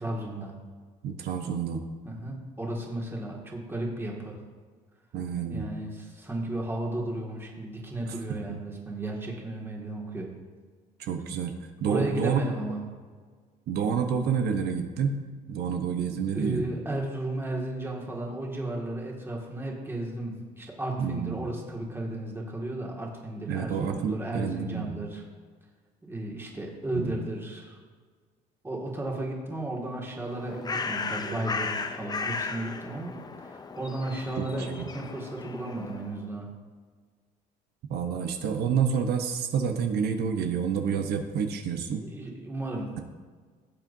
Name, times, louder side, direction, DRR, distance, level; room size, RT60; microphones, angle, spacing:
voice 1, 0.0-0.5 2.0-4.4 5.5-10.3 11.8-12.8 16.3-25.2 26.0-27.8 28.6-33.1 33.4-36.5 42.0-43.0, right 1 dB, 15° right, -2 dB, 2.1 m, -34 dB
voice 2, 1.0-1.8 5.1-5.7 8.1-8.2 8.5-8.6 11.0-12.5 13.7-15.2 15.5-16.6 21.0-21.5 23.5-24.9 26.9-27.1 31.3-31.4 34.4-34.9 37.9-42.0, right 6 dB, 70° right, 5 dB, 1.0 m, -29 dB
Bird, 30.1-36.2, left 4 dB, 25° left, 0.6 m, -35 dB
17.0 x 7.6 x 2.7 m, 1.5 s
cardioid pair, 110°, 17 cm